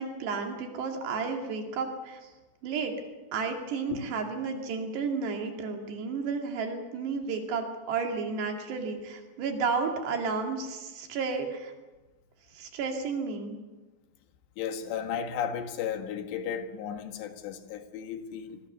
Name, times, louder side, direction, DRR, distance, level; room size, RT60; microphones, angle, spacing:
voice 1, 0.0-2.2 2.6-2.9 3.3-11.7 12.5-13.6, right 5 dB, 65° right, 4.4 m, -32 dB
voice 2, 14.6-18.6, left 8 dB, 70° left, 3.6 m, -34 dB
26.5 x 19.5 x 6.8 m
omnidirectional pair, 5.5 m